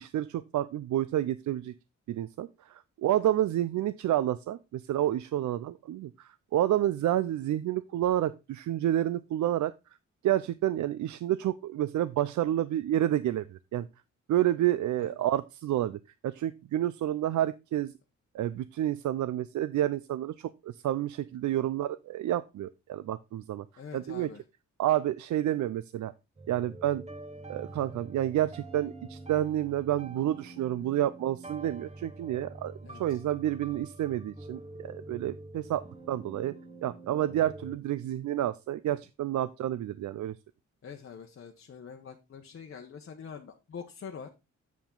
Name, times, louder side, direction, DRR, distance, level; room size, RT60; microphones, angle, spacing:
voice 1, 0.0-1.7 2.1-9.7 10.2-13.9 14.3-17.9 18.3-23.6 23.9-24.3 24.8-26.1 26.5-27.0 27.5-32.7 33.0-36.5 36.8-40.3, right 12 dB, 80° right, 15 dB, 0.5 m, -29 dB
voice 2, 23.8-24.4 27.7-27.8 32.8-33.2 40.8-44.3, left 6 dB, 45° left, 3 dB, 0.9 m, -45 dB
Sad Keys Song, 26.4-37.8, right 2 dB, 25° right, 1.4 m, -46 dB
7.2 x 7.1 x 3.7 m, 0.26 s
cardioid pair, 110°, 29 cm